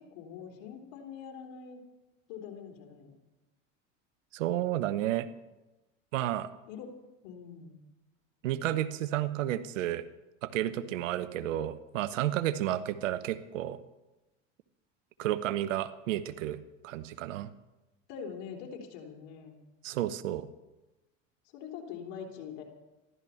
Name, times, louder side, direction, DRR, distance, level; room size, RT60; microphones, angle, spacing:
voice 1, 0.0-1.8 2.3-3.2 6.7-6.9 7.2-7.8 18.1-19.6 21.5-22.6, left 7 dB, 65° left, 2 dB, 3.7 m, -44 dB
voice 2, 4.3-5.3 6.1-6.5 8.4-10.0 10.4-13.8 15.2-16.6 16.8-17.5 19.8-20.5, right 13 dB, 85° right, 14 dB, 1.0 m, -31 dB
14.5 x 12.5 x 7.1 m, 1.0 s
hypercardioid pair, 90°, 37 cm